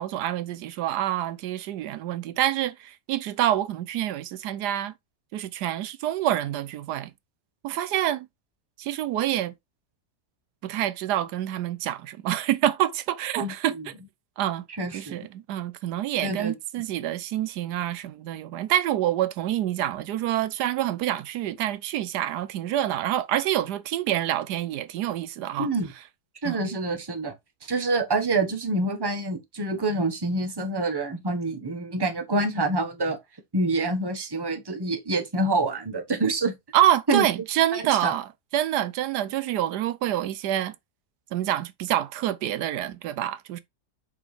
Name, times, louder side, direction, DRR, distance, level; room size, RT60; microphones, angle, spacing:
voice 1, 0.0-4.9 5.3-7.1 7.6-8.3 8.8-9.5 10.6-13.9 14.4-14.6 14.9-25.7 26.4-26.7 36.7-40.7 41.3-43.6, right 12 dB, 80° right, 1.2 m, -27 dB
voice 2, 13.4-13.9 14.8-15.3 16.2-16.5 25.6-25.9 26.4-27.3 27.6-33.2 33.5-36.6 37.1-37.3 37.7-38.1, right 2 dB, 15° right, 1.1 m, -26 dB
6.9 x 5.0 x 3.3 m
omnidirectional pair, 1.7 m